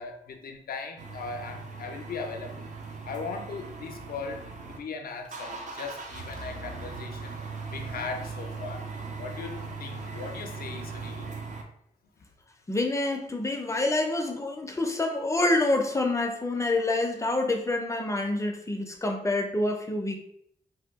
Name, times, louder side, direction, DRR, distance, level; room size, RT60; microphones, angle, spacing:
voice 1, 0.0-2.7 3.1-7.3 7.7-8.9 9.2-11.4, left 4 dB, 70° left, 0.5 m, -38 dB
sound 1, 1.0-4.8 5.1-11.6, right 4 dB, 50° right, 0.5 m, -39 dB
voice 2, 12.7-20.2, left 2 dB, 20° left, 0.5 m, -27 dB
2.7 x 2.2 x 3.4 m
wide cardioid pair, 95°, 16 cm